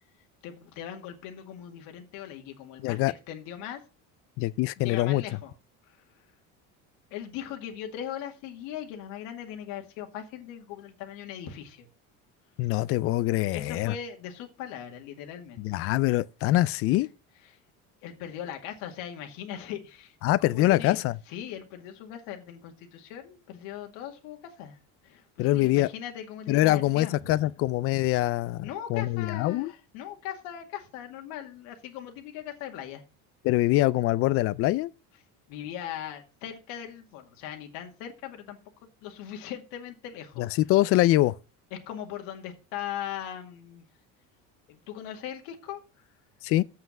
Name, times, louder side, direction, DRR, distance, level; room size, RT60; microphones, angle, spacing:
voice 1, 0.4-3.0 3.3-3.8 4.8-5.5 5.9-6.0 7.1-11.9 13.5-15.6 17.5-17.6 18.0-21.0 21.3-24.8 25.0-27.5 28.6-33.0 35.5-38.6 39.0-40.5 41.7-43.8 44.7-46.0, left 10 dB, 85° left, 2.2 m, -39 dB
voice 2, 2.8-3.1 4.4-5.2 12.6-14.0 15.6-17.1 20.2-21.1 25.4-25.9 26.5-29.7 33.4-34.9 40.4-41.4 46.4-46.6, left 16 dB, 45° left, 0.4 m, -24 dB
7.7 x 5.8 x 7.3 m
cardioid pair, 180°, 34 cm